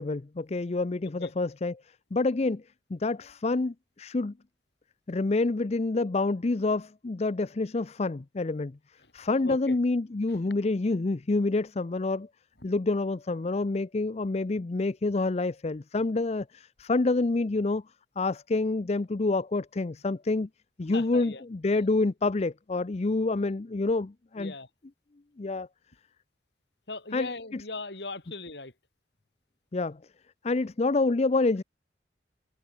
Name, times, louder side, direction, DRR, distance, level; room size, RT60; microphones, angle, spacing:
voice 1, 0.0-1.8 2.1-2.6 2.9-4.3 5.1-8.7 9.1-12.3 12.6-17.8 18.2-20.5 20.8-24.5 25.4-25.7 27.1-27.3 29.7-30.0 30.4-31.6, left 3 dB, 35° left, 0.5 m, -27 dB
voice 2, 9.4-9.8 10.3-10.4 20.9-21.4 24.4-24.7 26.9-28.7, left 3 dB, 65° left, 3.8 m, -39 dB
head